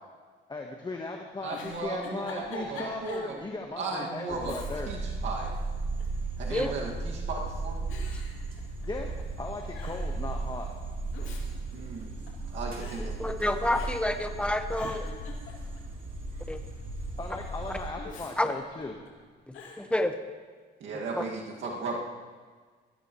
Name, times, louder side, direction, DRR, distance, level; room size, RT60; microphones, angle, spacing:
voice 1, 0.5-4.9 8.9-10.7 17.2-19.0, left 3 dB, 20° left, 1 dB, 1.2 m, -37 dB
Giggle, 1.3-3.3 3.7-3.8 4.4-5.1 5.4-6.2 7.0-7.4 7.9-9.1 9.4-9.5 9.7-10.1 10.9-12.5 12.8-13.0 13.7-14.2 14.5-15.9 18.0-19.1 19.5-19.8, left 4 dB, 85° left, 2.5 m, -46 dB
voice 2, 1.4-3.4 3.8-4.6 4.9-5.5 6.4-7.8 11.7-12.2 12.5-13.2 20.8-22.0, right 3 dB, 75° right, -2 dB, 2.0 m, -36 dB
sound 1, 4.3-17.9, right 3 dB, 45° right, 3.2 m, -36 dB
voice 3, 13.2-15.1 16.5-16.6 18.4-18.5 19.8-20.2 21.1-21.2, left 1 dB, 5° left, 6 dB, 1.2 m, -28 dB
18.0 x 14.0 x 3.1 m, 1.5 s
cardioid pair, 90°, 20 cm